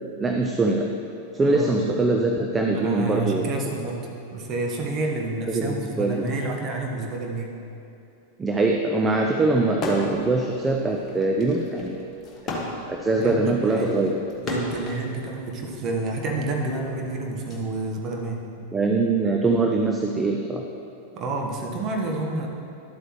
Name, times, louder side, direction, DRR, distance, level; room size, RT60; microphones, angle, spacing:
voice 1, 0.2-0.9 1.3-3.7 5.5-6.3 8.4-12.0 12.9-14.1 18.7-20.7, right 3 dB, 15° right, 1 dB, 0.6 m, -23 dB
voice 2, 2.7-4.0 4.3-7.5 13.2-14.0 14.4-18.4 21.1-22.5, right 2 dB, 30° right, 0 dB, 1.2 m, -29 dB
sound 1, 9.7-10.3 10.7-15.0 15.9-17.6, left 2 dB, 25° left, 1.3 m, -33 dB
11.5 x 7.9 x 3.1 m, 2.8 s
figure-of-eight pair, 90°, 0 cm